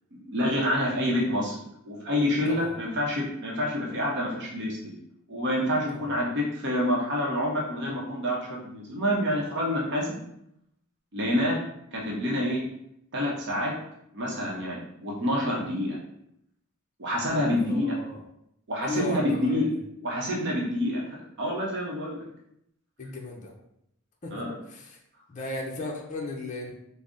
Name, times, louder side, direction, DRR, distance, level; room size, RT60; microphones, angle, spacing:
voice 1, 0.1-1.6 1.9-4.9 5.3-10.2 11.1-11.6 11.9-12.6 13.1-13.7 14.1-16.0 17.0-18.0 18.7-19.7 20.0-21.0 21.4-22.2 24.3-24.6, left 1 dB, 55° right, -3 dB, 0.7 m, -27 dB
voice 2, 17.6-18.2 18.8-19.8 23.0-23.5 24.2-24.3 24.7-24.9 25.3-26.7, left 2 dB, 35° left, -1 dB, 0.5 m, -35 dB
3.7 x 2.0 x 3.6 m, 0.77 s
head